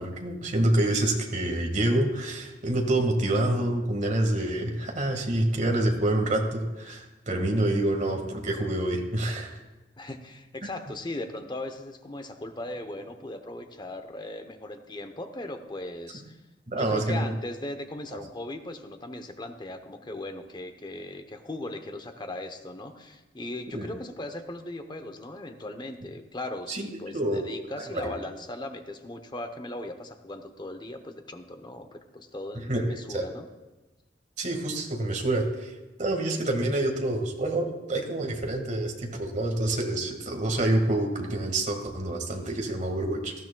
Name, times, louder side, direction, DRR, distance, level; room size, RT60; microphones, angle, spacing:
voice 1, 0.0-9.6 16.7-17.3 23.7-23.9 26.7-26.9 27.1-27.5 27.8-28.1 32.7-32.8 33.1-33.2 34.4-35.7 36.0-43.3, right 1 dB, 45° right, 3 dB, 1.8 m, -27 dB
voice 2, 7.4-7.7 10.0-16.4 16.7-33.5, left 1 dB, 25° left, 7 dB, 0.8 m, -38 dB
18.5 x 13.5 x 2.3 m, 1.1 s
head